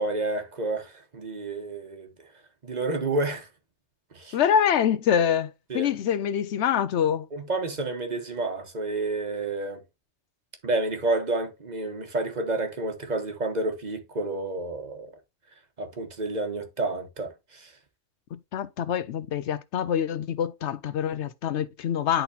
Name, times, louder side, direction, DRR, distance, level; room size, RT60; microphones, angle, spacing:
voice 1, 0.0-2.1 2.6-3.5 4.1-4.4 5.7-5.9 7.3-9.8 10.6-15.1 15.8-17.7, right 2 dB, 35° right, 1.1 m, -30 dB
voice 2, 4.3-7.3 18.3-22.2, left 8 dB, 70° left, 0.8 m, -25 dB
10.5 x 4.0 x 2.7 m
omnidirectional pair, 1.3 m